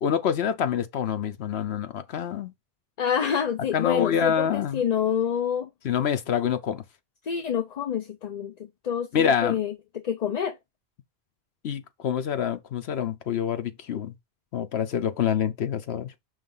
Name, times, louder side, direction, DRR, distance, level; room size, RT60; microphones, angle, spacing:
voice 1, 0.0-2.5 3.7-4.8 5.8-6.8 9.1-9.6 11.6-14.1 14.5-16.1, left 8 dB, 80° left, 1.0 m, -26 dB
voice 2, 3.0-5.7 7.2-9.7 10.0-10.6, left 8 dB, 50° left, 0.6 m, -27 dB
5.5 x 3.2 x 5.4 m
omnidirectional pair, 1.1 m